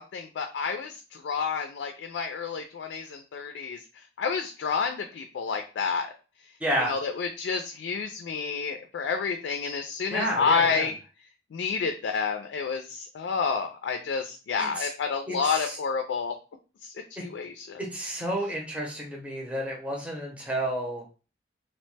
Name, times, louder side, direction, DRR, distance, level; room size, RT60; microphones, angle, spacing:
voice 1, 0.0-6.1 6.9-10.9 11.5-16.3 16.8-17.8, left 5 dB, 80° left, 5 dB, 0.3 m, -29 dB
voice 2, 6.6-7.0 10.1-10.9 14.6-14.9 15.3-15.8 17.2-17.3 17.8-21.0, right 1 dB, 10° right, -2 dB, 0.7 m, -31 dB
2.8 x 2.1 x 3.2 m, 0.35 s
head